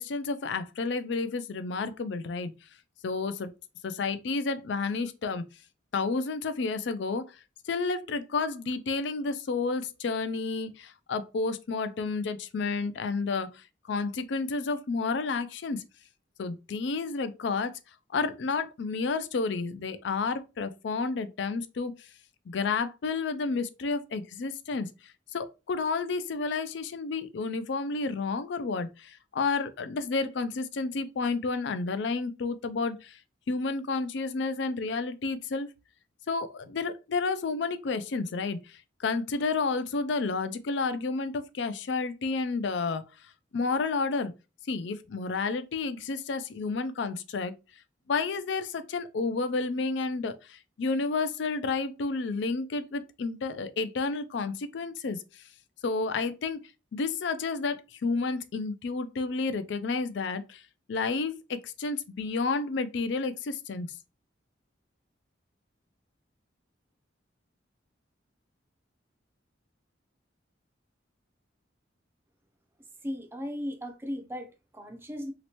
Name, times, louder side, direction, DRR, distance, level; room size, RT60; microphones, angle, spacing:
voice 1, 0.0-2.5 3.0-3.5 3.8-5.4 5.9-7.2 7.7-15.8 16.4-17.7 18.1-21.9 22.5-24.9 25.3-33.2 33.5-35.7 36.3-43.0 43.5-44.3 44.7-47.6 48.1-55.2 55.8-56.6 56.9-60.6 60.9-63.9, left 4 dB, 65° left, 0.4 m, -31 dB
voice 2, 73.0-75.3, equal, 10° right, 0.5 m, -37 dB
3.1 x 2.9 x 2.9 m
head